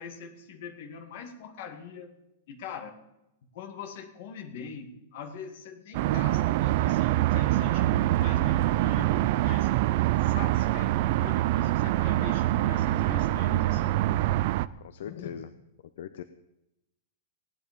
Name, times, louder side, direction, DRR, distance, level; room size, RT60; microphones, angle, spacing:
voice 1, 0.0-2.1 2.5-3.0 3.5-9.7 10.2-14.0 15.0-15.3, left 6 dB, 45° left, 5 dB, 2.1 m, -42 dB
sound 1, 5.9-14.7, right 15 dB, 40° right, 0.4 m, -25 dB
voice 2, 14.8-15.5 16.0-16.2, left 9 dB, 60° left, 11 dB, 0.7 m, -40 dB
17.0 x 11.0 x 5.2 m, 0.87 s
supercardioid pair, 180°, 0 cm